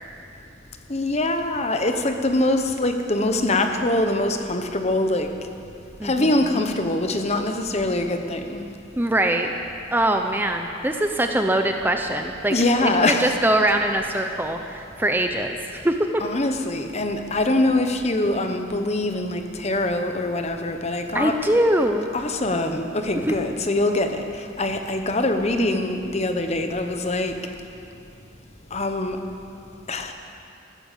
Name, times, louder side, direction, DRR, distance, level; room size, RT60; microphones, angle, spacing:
voice 1, 0.9-5.3 6.0-8.7 12.5-13.4 16.2-21.4 22.1-27.4 28.7-29.2 29.9-30.1, left 2 dB, 30° left, 6 dB, 1.0 m, -23 dB
voice 2, 6.0-6.6 9.0-9.5 9.9-12.5 12.8-16.2 21.1-22.1 23.2-23.3 25.6-25.8, right 1 dB, 10° right, 5 dB, 0.6 m, -23 dB
15.5 x 12.5 x 7.4 m, 2.6 s
head